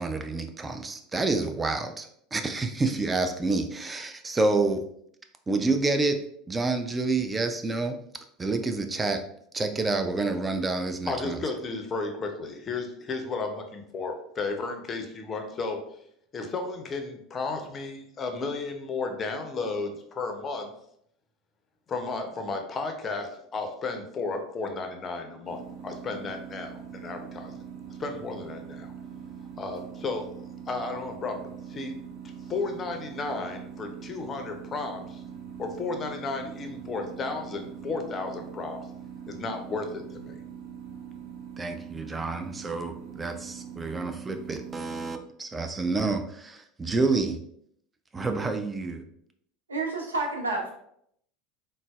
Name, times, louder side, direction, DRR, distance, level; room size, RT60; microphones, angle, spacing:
voice 1, 0.0-4.9 5.5-6.2 6.5-8.0 8.4-9.2 9.5-11.4 41.6-47.4 48.1-49.0, right 3 dB, 20° right, 6 dB, 0.4 m, -28 dB
voice 2, 11.1-15.8 16.3-20.7 21.9-27.5 28.0-28.9 29.6-30.3 30.7-32.0 32.5-35.2 35.6-38.8 39.3-40.4, left 3 dB, 30° left, 5 dB, 0.5 m, -33 dB
sound 1, 25.4-45.2, right 8 dB, 50° right, 1.4 m, -42 dB
voice 3, 49.7-50.7, right 2 dB, 85° right, 1 dB, 0.5 m, -29 dB
3.8 x 2.0 x 2.3 m, 0.70 s
figure-of-eight pair, 75°, 0 cm